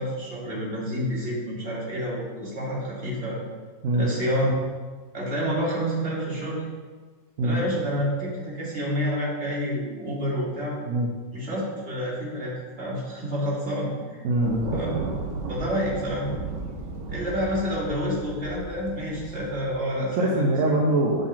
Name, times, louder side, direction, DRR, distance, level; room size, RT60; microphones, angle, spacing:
voice 1, 0.0-3.4 3.9-4.5 5.1-6.7 7.4-10.8 11.3-14.2 14.7-14.9 15.5-16.3 17.1-20.5, equal, 40° right, -6 dB, 2.2 m, -28 dB
voice 2, 14.2-14.7 20.2-21.3, right 1 dB, 60° right, -1 dB, 0.9 m, -23 dB
Thunder, 14.4-19.8, right 3 dB, 80° right, 1.6 m, -34 dB
6.3 x 4.0 x 5.8 m, 1.4 s
omnidirectional pair, 1.9 m